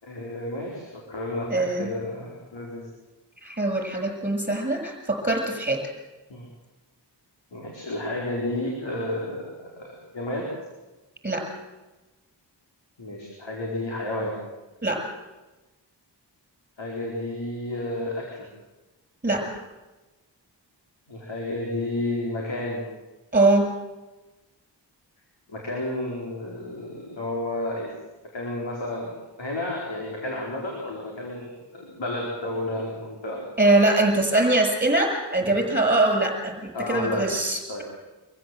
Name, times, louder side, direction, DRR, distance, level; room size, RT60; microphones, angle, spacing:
voice 1, 0.0-2.9 6.3-6.5 7.5-10.5 13.0-14.3 16.8-18.5 21.1-22.8 25.5-28.0 28.3-29.1 29.4-33.4 36.7-37.2 37.7-37.8, left 1 dB, 85° left, -3 dB, 4.9 m, -31 dB
voice 2, 1.5-1.9 3.4-5.8 11.2-11.4 14.8-15.0 19.2-19.4 23.3-23.7 33.6-37.8, right 2 dB, 20° right, 1 dB, 7.1 m, -22 dB
25.0 x 15.5 x 8.0 m, 1.1 s
wide cardioid pair, 85°, 43 cm